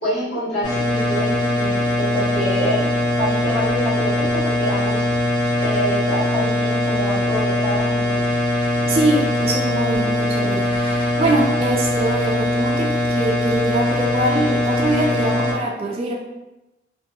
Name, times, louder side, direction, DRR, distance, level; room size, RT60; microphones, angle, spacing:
voice 1, 0.0-2.9 3.2-5.1 5.6-8.2, equal, 70° left, -11 dB, 1.3 m, -26 dB
sound 1, 0.6-15.5, left 1 dB, 25° left, 0.6 m, -21 dB
voice 2, 8.8-16.1, right 1 dB, 35° right, -2 dB, 0.4 m, -23 dB
2.8 x 2.3 x 2.2 m, 0.96 s
head